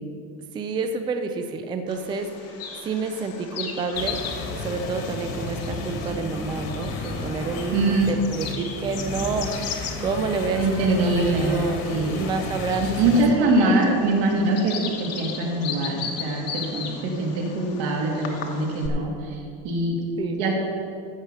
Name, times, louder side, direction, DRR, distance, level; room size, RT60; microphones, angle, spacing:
voice 1, 0.5-2.6 2.8-4.2 4.6-11.8 12.1-13.2 13.6-14.0 20.2-20.4, right 4 dB, 15° right, 6 dB, 0.3 m, -29 dB
Bird vocalization bird call bird song, 1.9-18.9, left 6 dB, 40° left, 1.1 m, -37 dB
sound 1, 3.9-13.3, left 3 dB, 80° left, 2.4 m, -33 dB
voice 2, 7.7-8.1 10.6-12.2 12.8-20.0 20.4-20.5, right 2 dB, 70° right, -1 dB, 2.5 m, -23 dB
13.5 x 4.9 x 7.6 m, 2.4 s
cardioid pair, 165°, 39 cm